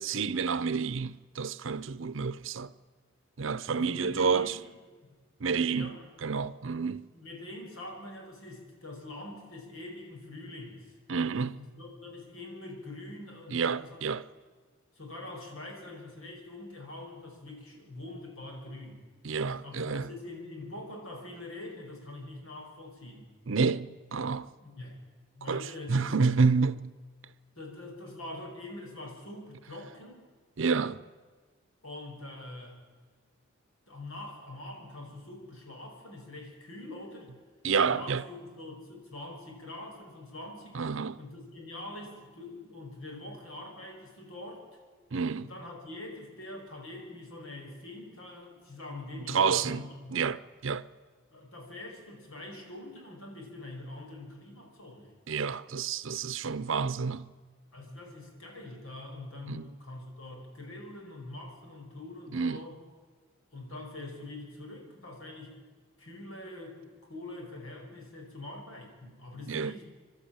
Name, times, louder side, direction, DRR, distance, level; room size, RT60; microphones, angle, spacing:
voice 1, 0.0-2.7 3.4-4.6 5.4-7.1 11.1-11.6 13.5-14.2 19.2-20.1 23.5-24.5 25.5-27.0 30.6-31.1 37.6-38.2 40.7-41.2 45.1-45.5 49.3-50.9 55.3-57.3 59.5-59.7 62.3-62.6 69.5-69.7, right 5 dB, 65° right, 0.6 m, -29 dB
voice 2, 3.7-4.7 5.0-5.1 5.7-6.0 7.1-10.9 11.6-14.2 15.0-19.0 19.6-23.3 24.6-25.0 25.3-26.1 27.6-30.2 31.8-32.8 33.9-37.3 37.9-40.8 41.2-44.7 45.4-50.1 51.3-55.1 57.7-62.8 63.5-65.6 66.0-69.8, left 2 dB, 80° left, 5.4 m, -44 dB
27.5 x 12.5 x 8.9 m
head